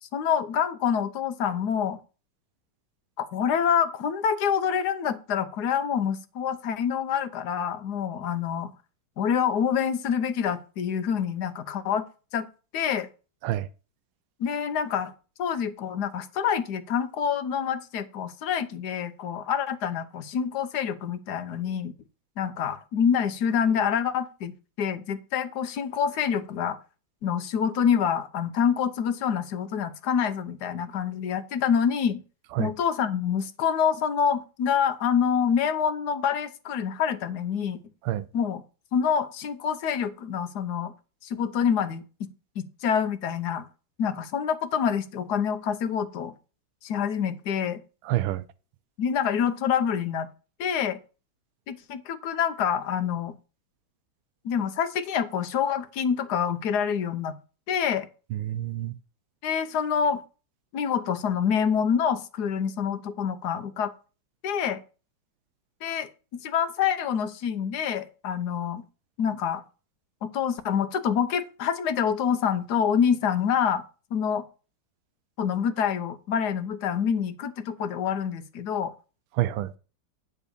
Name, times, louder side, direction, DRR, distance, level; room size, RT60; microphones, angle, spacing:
voice 1, 0.0-2.0 3.2-8.7 9.2-12.1 12.3-12.5 12.7-13.1 14.4-15.1 15.4-21.9 22.4-24.5 24.8-26.8 27.2-32.2 32.6-37.8 38.3-38.6 38.9-40.9 41.2-42.0 42.6-43.7 44.0-46.3 46.8-47.8 49.0-50.3 50.6-51.0 51.7-53.3 54.4-57.4 57.7-58.1 59.4-60.2 60.7-63.9 64.4-64.8 65.8-66.1 66.4-68.8 69.2-69.6 70.2-73.8 74.1-74.4 75.4-78.9, left 7 dB, 65° left, 1.2 m, -26 dB
voice 2, 48.0-48.5 58.3-58.9 79.4-79.7, right 14 dB, 85° right, 1.4 m, -27 dB
9.8 x 4.0 x 6.9 m
omnidirectional pair, 2.2 m